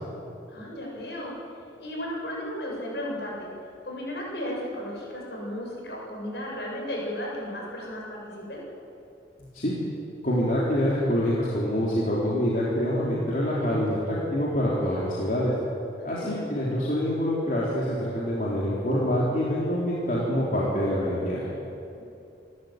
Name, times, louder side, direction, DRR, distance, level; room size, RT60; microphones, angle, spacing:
voice 1, 0.5-1.3 1.8-3.5 3.8-8.6 16.2-16.5 22.0-22.1, equal, 70° left, -3 dB, 7.6 m, -34 dB
voice 2, 10.2-15.5 16.0-21.6, equal, 45° left, -6 dB, 3.6 m, -26 dB
27.0 x 13.5 x 9.1 m, 2.7 s
head